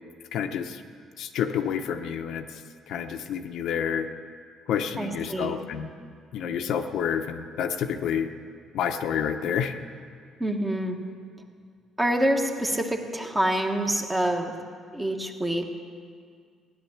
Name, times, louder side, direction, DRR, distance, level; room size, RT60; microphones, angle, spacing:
voice 1, 0.3-0.8 1.2-2.6 2.9-4.1 4.7-5.9 6.3-8.3 8.7-9.7, left 8 dB, 70° left, 6 dB, 0.8 m, -29 dB
voice 2, 5.0-5.6 10.4-11.0 12.0-14.5 14.9-15.7, right 1 dB, 10° right, 3 dB, 1.3 m, -26 dB
17.0 x 10.0 x 7.3 m, 2.1 s
cardioid pair, 145°, 0 cm